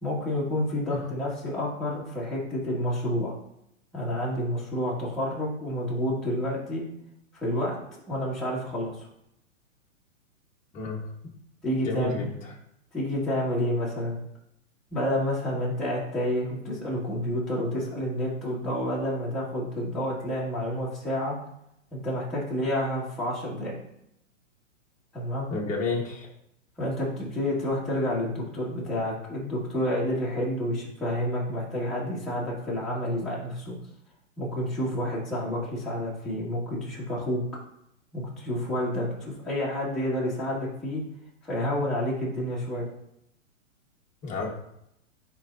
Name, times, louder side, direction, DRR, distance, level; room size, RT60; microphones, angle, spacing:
voice 1, 0.0-3.3 3.9-6.9 7.3-7.8 8.1-9.1 11.6-12.3 12.9-14.2 14.9-21.4 21.9-23.8 25.1-25.5 26.8-33.8 34.4-37.4 38.1-41.0 41.4-42.9, equal, ahead, -8 dB, 2.0 m, -29 dB
voice 2, 11.8-12.3 25.5-26.3 44.2-44.5, left 4 dB, 20° left, -2 dB, 1.4 m, -30 dB
10.5 x 3.8 x 2.7 m, 0.78 s
hypercardioid pair, 145°, 39 cm